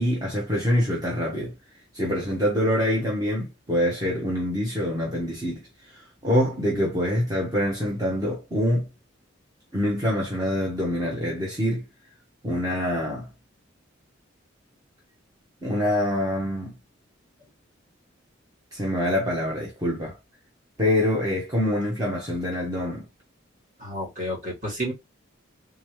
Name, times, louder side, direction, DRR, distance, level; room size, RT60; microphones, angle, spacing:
voice 1, 0.0-1.5 1.9-8.9 9.7-11.8 12.4-13.3 15.6-16.7 18.7-20.2 20.8-23.1, left 1 dB, 20° right, 1.0 m, -25 dB
voice 2, 23.8-24.9, equal, 40° right, 1.9 m, -30 dB
3.6 x 3.1 x 3.1 m
head